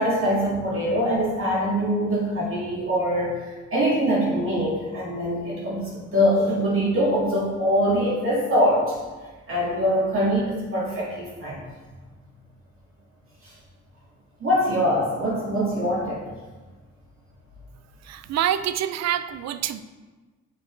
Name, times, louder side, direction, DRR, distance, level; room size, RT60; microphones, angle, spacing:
voice 1, 0.0-9.0 9.5-11.6 13.4-13.5 14.4-16.2, equal, 45° right, -6 dB, 2.0 m, -23 dB
voice 2, 18.1-19.8, right 10 dB, 60° right, 13 dB, 0.5 m, -26 dB
8.2 x 5.1 x 3.2 m, 1.3 s
cardioid pair, 90°, 30 cm